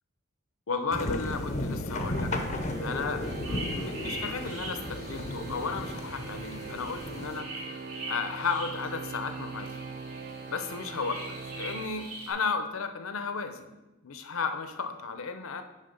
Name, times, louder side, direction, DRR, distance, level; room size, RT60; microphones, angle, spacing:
voice 1, 0.7-9.8 10.5-11.2 11.5-13.7 14.0-15.6, left 4 dB, 80° left, 8 dB, 0.7 m, -34 dB
sound 1, 0.9-7.4, left 1 dB, 35° left, 0.7 m, -34 dB
Organ, 1.9-12.5, right 4 dB, 40° right, 0.3 m, -42 dB
sound 2, 3.2-12.3, right 1 dB, 90° right, 2.6 m, -43 dB
9.3 x 3.8 x 5.2 m, 1.1 s
head